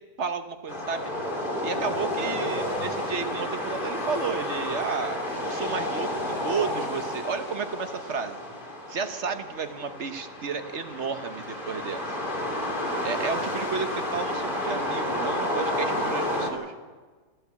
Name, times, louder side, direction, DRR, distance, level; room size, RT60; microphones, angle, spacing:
voice 1, 0.2-1.1 1.6-8.4 8.9-12.0 13.0-16.7, right 5 dB, 45° right, 9 dB, 1.3 m, -32 dB
sound 1, 0.7-16.5, left 1 dB, 30° left, 3.2 m, -31 dB
26.0 x 13.0 x 8.5 m, 1.4 s
omnidirectional pair, 1.8 m